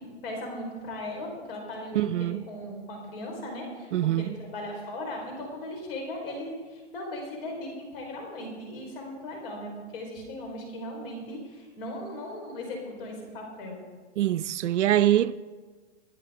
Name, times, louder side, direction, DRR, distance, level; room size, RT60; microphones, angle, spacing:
voice 1, 0.0-13.8, left 1 dB, 50° left, 4.9 m, -38 dB
voice 2, 1.9-2.4 3.9-4.4 14.2-15.5, right 12 dB, 75° right, 0.6 m, -24 dB
24.5 x 9.3 x 3.8 m
hypercardioid pair, 155°, 36 cm